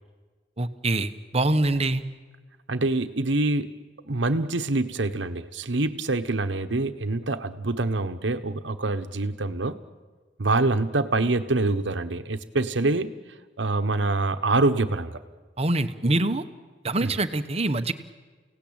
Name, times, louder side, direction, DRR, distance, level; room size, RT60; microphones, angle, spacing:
voice 1, 0.6-2.0 15.6-16.4 16.8-17.9, right 2 dB, 35° right, 10 dB, 1.1 m, -24 dB
voice 2, 2.7-3.7 4.1-9.8 10.4-13.2 13.6-15.2 17.0-17.1, right 2 dB, 70° right, 9 dB, 1.2 m, -25 dB
30.0 x 17.5 x 8.9 m, 1.4 s
head